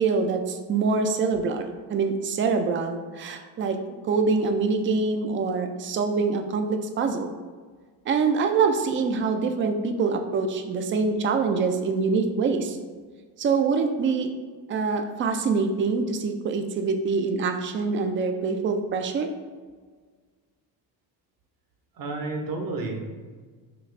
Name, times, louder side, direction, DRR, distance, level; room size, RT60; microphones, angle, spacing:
voice 1, 0.0-3.8 4.1-7.3 8.1-12.8 13.4-14.3 14.7-19.3, right 4 dB, 30° right, 6 dB, 0.4 m, -25 dB
voice 2, 21.9-23.1, right 3 dB, 50° right, 2 dB, 0.8 m, -31 dB
4.1 x 2.3 x 3.2 m, 1.5 s
supercardioid pair, 80°, 45 cm